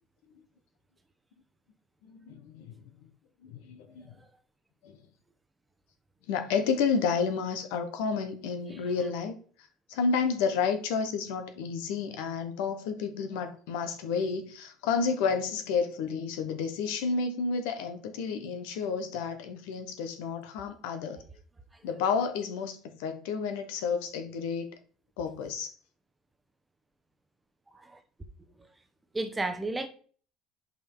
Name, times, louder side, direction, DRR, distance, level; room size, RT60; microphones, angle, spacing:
voice 1, 2.1-2.9 3.4-4.2 4.8-5.0 6.3-9.3 9.9-21.2 21.8-24.7 25.2-25.7, left 5 dB, 85° left, 1.1 m, -31 dB
voice 2, 29.1-29.9, right 2 dB, 10° right, 0.8 m, -32 dB
5.5 x 5.3 x 4.7 m
supercardioid pair, 115°, 0 cm